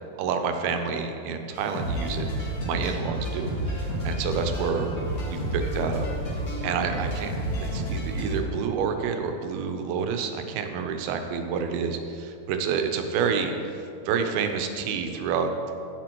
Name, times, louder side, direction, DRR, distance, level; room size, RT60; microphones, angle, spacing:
voice 1, 0.2-4.9 5.2-6.1 6.6-7.3 7.6-13.5 14.0-15.7, right 6 dB, 80° right, 6 dB, 2.5 m, -29 dB
sound 1, 1.5-8.4, right 1 dB, 60° left, 0.9 m, -30 dB
11.0 x 9.1 x 3.0 m, 2.6 s
omnidirectional pair, 4.5 m